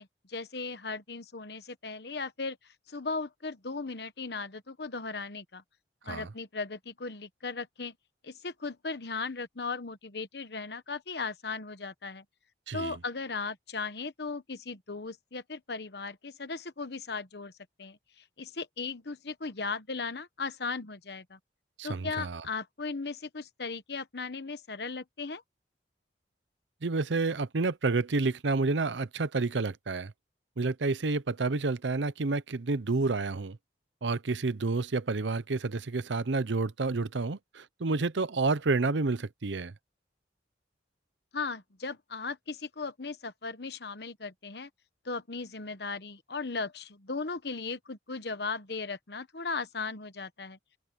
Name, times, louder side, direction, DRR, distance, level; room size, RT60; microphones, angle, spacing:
voice 1, 0.0-2.6 2.9-5.6 6.0-7.9 8.2-12.2 12.7-17.5 17.8-21.4 21.8-25.4 41.3-44.7 45.0-50.6, left 4 dB, 65° left, 1.1 m, -37 dB
voice 2, 12.7-13.0 21.8-22.4 26.8-30.1 30.6-33.6 34.0-39.7, right 3 dB, 85° right, 0.7 m, -29 dB
open air
head